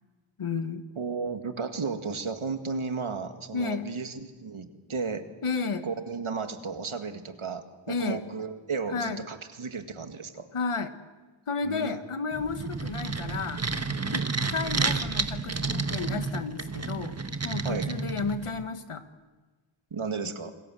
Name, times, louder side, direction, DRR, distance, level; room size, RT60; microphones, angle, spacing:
voice 1, 0.4-0.9 3.5-3.9 5.4-5.9 7.9-8.2 8.9-9.2 10.5-10.9 11.5-13.8 14.1-17.2 17.4-19.0 20.2-20.3, left 4 dB, 85° left, 9 dB, 1.5 m, -32 dB
voice 2, 1.0-5.3 5.8-10.5 11.6-12.0 17.6-17.9 19.9-20.5, right 4 dB, 75° right, 7 dB, 2.0 m, -34 dB
sound 1, 12.3-18.6, right 4 dB, 30° right, 1.4 m, -31 dB
27.5 x 21.0 x 7.8 m, 1.3 s
wide cardioid pair, 80°, 50 cm